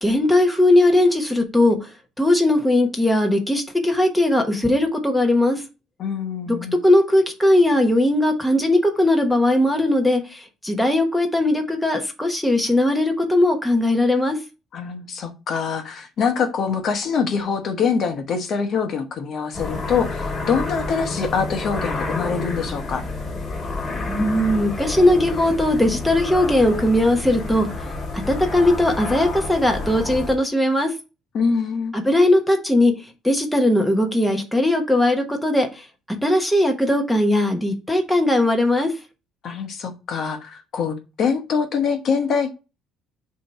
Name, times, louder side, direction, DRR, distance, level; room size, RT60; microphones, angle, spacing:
voice 1, 0.0-1.9 2.2-5.6 6.5-14.4 24.1-27.7 28.1-30.9 31.9-32.9 33.2-35.8 36.2-38.9, left 1 dB, ahead, 1.1 m, -19 dB
voice 2, 6.0-6.8 14.7-23.0 31.3-31.9 39.4-42.5, left 6 dB, 45° left, 1.0 m, -24 dB
sound 1, 19.5-30.4, left 3 dB, 30° left, 2.3 m, -29 dB
7.3 x 2.8 x 4.6 m
cardioid pair, 140°, 0 cm